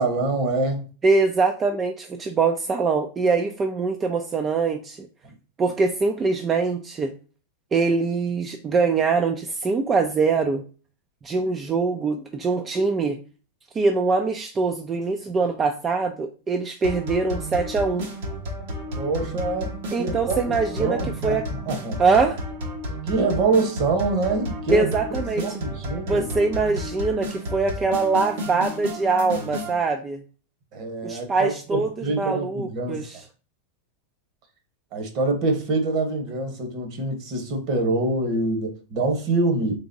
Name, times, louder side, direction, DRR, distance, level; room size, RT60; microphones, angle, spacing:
voice 1, 0.0-0.9 19.0-22.0 23.0-24.9 25.4-26.3 30.7-33.1 34.9-39.8, right 3 dB, 45° right, 1.3 m, -25 dB
voice 2, 1.0-5.1 5.6-7.1 7.7-10.6 11.2-13.2 13.7-18.1 19.9-21.4 22.0-22.4 24.7-25.5 26.1-30.2 31.0-33.2, right 4 dB, 20° right, 0.4 m, -23 dB
sound 1, 16.8-29.8, equal, 75° right, 1.4 m, -32 dB
4.0 x 3.5 x 2.6 m
supercardioid pair, 130°, 0 cm